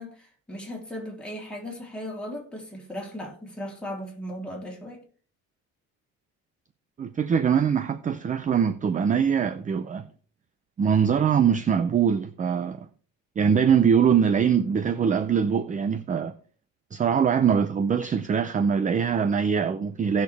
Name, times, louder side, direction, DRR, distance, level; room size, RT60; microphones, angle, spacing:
voice 1, 0.0-5.0, equal, 5° left, 3.4 m, -37 dB
voice 2, 7.0-10.1 10.8-12.9 13.4-16.3 16.9-20.2, right 7 dB, 25° right, 0.5 m, -23 dB
17.0 x 6.5 x 3.4 m
cardioid pair, 145°, 30 cm